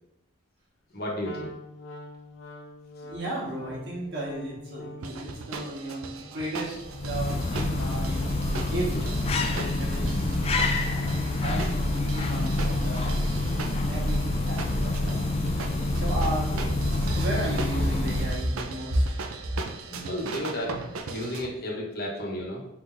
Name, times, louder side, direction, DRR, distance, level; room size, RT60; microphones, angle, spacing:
voice 1, 0.9-1.5 8.9-9.0 19.6-20.8 21.1-22.7, equal, 45° left, -2 dB, 1.0 m, -33 dB
Wind instrument woodwind instrument, 1.2-5.3, left 1 dB, 75° left, 0.6 m, -43 dB
voice 2, 3.0-10.5 10.8-13.4 13.8-15.2 15.9-19.2, right 1 dB, 55° right, -4 dB, 1.4 m, -33 dB
sound 1, 5.0-21.5, right 4 dB, 85° right, 0.5 m, -39 dB
sound 2, 6.8-18.6, left 2 dB, 30° left, 0.4 m, -27 dB
4.6 x 3.9 x 2.6 m, 0.82 s
head